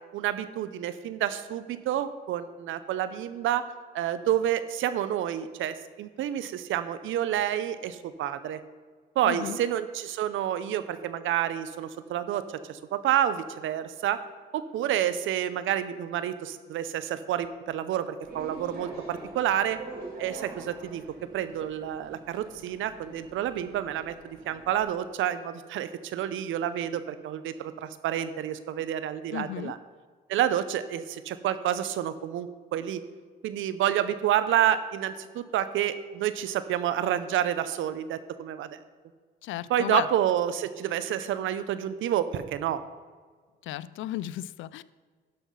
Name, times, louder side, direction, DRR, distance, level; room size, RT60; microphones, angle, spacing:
voice 1, 0.1-8.6 9.2-14.2 14.5-19.8 20.2-21.0 21.3-29.8 30.3-33.0 33.4-38.8 39.7-42.8, right 11 dB, 80° right, 13 dB, 0.7 m, -29 dB
voice 2, 9.2-9.6 29.3-29.7 39.4-40.1 43.6-44.8, left 14 dB, 80° left, 18 dB, 0.4 m, -34 dB
sound 1, 18.2-24.8, right 2 dB, 55° right, 3.6 m, -45 dB
12.5 x 5.8 x 5.5 m, 1.5 s
cardioid pair, 90°, 20 cm